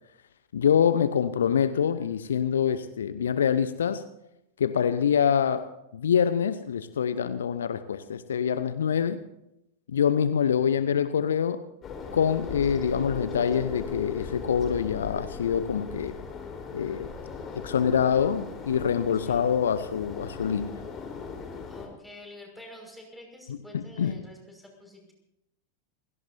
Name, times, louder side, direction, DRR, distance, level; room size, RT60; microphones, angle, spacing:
voice 1, 0.5-4.0 4.6-5.7 5.9-9.2 9.9-11.6 12.1-16.1 16.7-17.1 17.6-20.7 23.7-24.1, left 8 dB, 65° left, 12 dB, 0.8 m, -25 dB
sound 1, 11.8-21.9, left 5 dB, 25° left, 3.9 m, -38 dB
voice 2, 19.2-19.6 21.7-25.1, left 2 dB, ahead, 0 dB, 5.6 m, -47 dB
28.5 x 17.5 x 2.7 m, 0.85 s
figure-of-eight pair, 90°, 0 cm